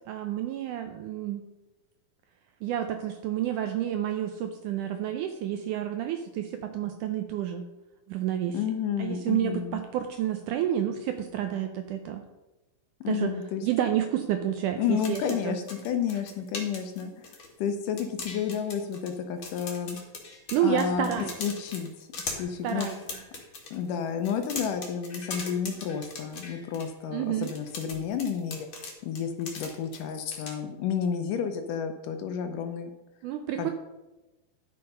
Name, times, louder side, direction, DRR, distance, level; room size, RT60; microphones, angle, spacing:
voice 1, 0.1-1.4 2.6-7.6 8.1-8.6 9.0-12.2 13.1-13.4 13.6-15.6 20.5-21.3 22.6-23.0 27.1-27.5 33.2-33.7, right 10 dB, 80° right, 7 dB, 1.9 m, -29 dB
voice 2, 8.5-9.8 13.0-13.6 14.8-20.0 20.6-22.9 23.7-28.7 29.0-32.9 33.6-33.7, left 7 dB, 75° left, 7 dB, 2.1 m, -31 dB
sound 1, 14.8-17.7 18.0-19.2 19.4-23.8 24.2-26.9 27.4-30.0 30.3-30.5, left 3 dB, 40° left, 2.1 m, -39 dB
10.5 x 6.7 x 5.4 m, 1.1 s
omnidirectional pair, 4.2 m